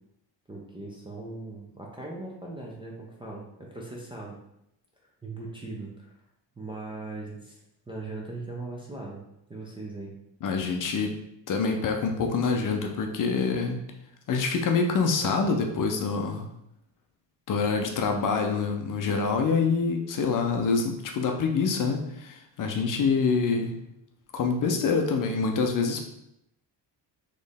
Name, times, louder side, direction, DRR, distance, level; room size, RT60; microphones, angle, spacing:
voice 1, 0.5-4.4 5.2-6.1 6.6-7.6 7.9-10.2, right 2 dB, 10° right, -4 dB, 0.4 m, -39 dB
voice 2, 10.4-11.2 11.5-13.8 14.3-16.4 17.5-23.7 24.3-26.0, left 4 dB, 45° left, 4 dB, 0.5 m, -26 dB
4.2 x 3.1 x 3.4 m, 0.81 s
cardioid pair, 175°, 45 cm